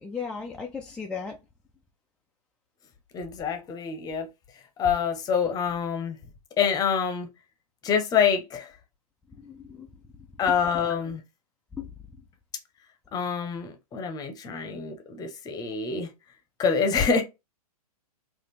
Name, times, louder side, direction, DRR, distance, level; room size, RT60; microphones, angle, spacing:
voice 1, 0.0-1.4 9.4-9.9 11.8-11.9, left 5 dB, 5° left, 0.3 m, -36 dB
voice 2, 3.1-4.3 4.8-6.2 6.6-7.3 7.8-8.7 10.4-11.2 13.1-16.1 16.6-17.2, left 6 dB, 20° left, 0.8 m, -26 dB
4.0 x 2.5 x 3.2 m
figure-of-eight pair, 110°, 20 cm